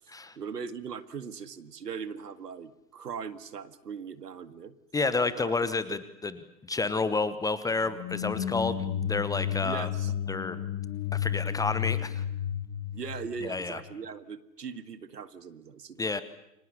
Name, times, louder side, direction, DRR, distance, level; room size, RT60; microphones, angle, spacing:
voice 1, 0.4-4.8 5.4-5.5 5.9-6.0 9.6-10.1 12.9-16.1, right 6 dB, 70° right, 12 dB, 2.1 m, -40 dB
voice 2, 4.9-6.3 6.7-9.9 10.3-10.6 11.1-12.2 13.4-13.8 16.0-16.2, left 3 dB, 5° left, 14 dB, 1.0 m, -30 dB
sound 1, 7.9-13.9, left 10 dB, 30° left, 1.8 m, -32 dB
30.0 x 25.0 x 7.1 m, 0.85 s
figure-of-eight pair, 110°, 50 cm